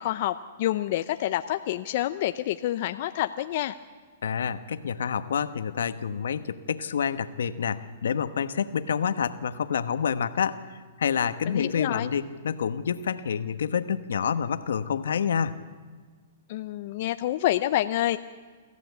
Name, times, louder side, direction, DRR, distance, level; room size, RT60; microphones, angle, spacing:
voice 1, 0.0-3.8 11.5-12.1 16.5-18.2, left 14 dB, 55° left, 9 dB, 0.6 m, -28 dB
voice 2, 4.2-15.6, left 7 dB, 80° left, 12 dB, 1.1 m, -28 dB
25.5 x 15.0 x 8.2 m, 1.5 s
hypercardioid pair, 130°, 0 cm